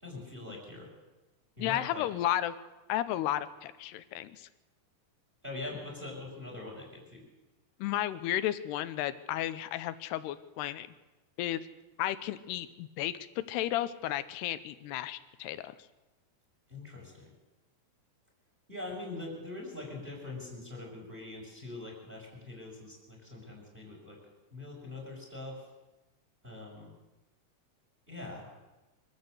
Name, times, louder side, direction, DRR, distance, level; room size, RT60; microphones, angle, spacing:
voice 1, 0.0-0.9 1.6-2.0 5.4-7.2 16.7-17.3 18.7-24.2 24.5-25.6 26.4-26.9 28.1-28.5, left 2 dB, 10° right, -1 dB, 5.9 m, -43 dB
voice 2, 1.6-2.5 2.9-4.5 7.8-10.9 11.4-11.7 12.0-15.8, left 13 dB, 80° left, 14 dB, 2.9 m, -33 dB
24.5 x 14.5 x 8.2 m, 1.1 s
omnidirectional pair, 4.7 m